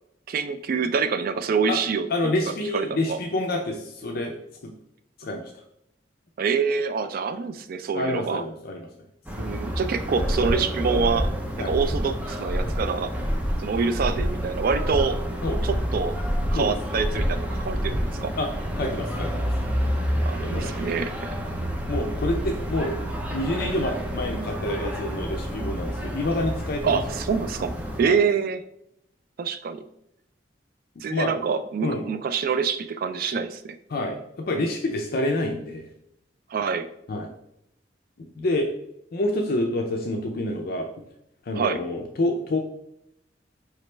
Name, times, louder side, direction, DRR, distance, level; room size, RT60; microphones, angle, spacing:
voice 1, 0.3-2.1 2.7-3.2 6.4-8.4 9.4-11.3 11.6-13.1 13.6-15.2 15.6-16.2 16.5-18.4 20.2-21.1 26.8-28.6 29.4-29.8 31.0-33.8 36.5-36.9 41.5-41.8, right 5 dB, 55° right, 11 dB, 0.3 m, -26 dB
voice 2, 2.1-4.4 4.6-4.7 5.2-5.5 7.9-8.9 11.6-11.7 15.4-15.6 16.6-16.7 18.4-18.5 18.8-19.5 20.4-20.7 21.9-23.0 23.3-27.0 28.0-28.2 31.0-31.3 31.8-32.0 33.9-34.2 34.5-35.8 37.1-37.3 38.2-38.7 39.1-40.9 41.5-42.6, left 1 dB, 55° left, 2 dB, 0.5 m, -27 dB
sound 1, 9.3-28.0, equal, 10° right, 0.6 m, -30 dB
Breathing, 10.1-10.5 10.9-11.3 11.6-12.0 12.4-12.8 13.2-13.5 13.9-14.3 14.7-15.0 15.4-15.8 16.2-16.5 16.9-17.3 17.7-18.0, equal, 15° left, 1.4 m, -28 dB
4.9 x 3.1 x 3.2 m, 0.77 s
head